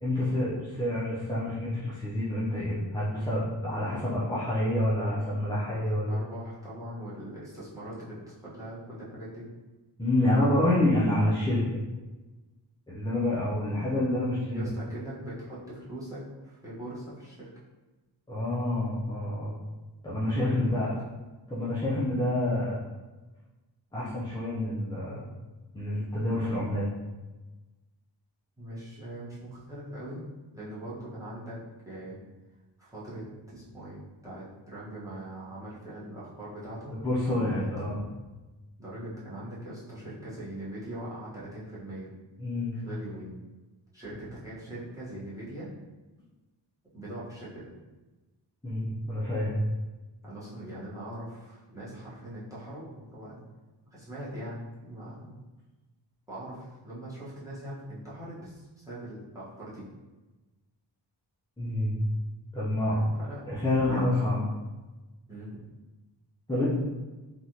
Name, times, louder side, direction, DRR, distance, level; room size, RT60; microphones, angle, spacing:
voice 1, 0.0-6.2 10.0-11.6 12.9-14.6 18.3-19.5 20.0-21.0 21.5-22.8 23.9-25.3 25.7-26.9 37.0-38.0 42.4-42.8 48.6-49.6 61.6-62.0 62.5-63.0 63.5-64.5 66.5-66.7, left 1 dB, 10° left, -8 dB, 0.5 m, -28 dB
voice 2, 5.8-9.5 14.5-17.5 20.5-20.9 23.9-24.1 28.6-30.2 30.5-31.6 31.8-32.2 32.8-37.0 37.3-38.0 38.8-42.1 42.7-43.4 43.9-45.7 46.9-47.7 50.2-53.4 53.9-55.4 56.3-59.8 62.9-63.5 65.3-65.6, right 1 dB, 5° right, -10 dB, 1.0 m, -41 dB
3.2 x 2.4 x 2.7 m, 1.2 s
wide cardioid pair, 95°, 45 cm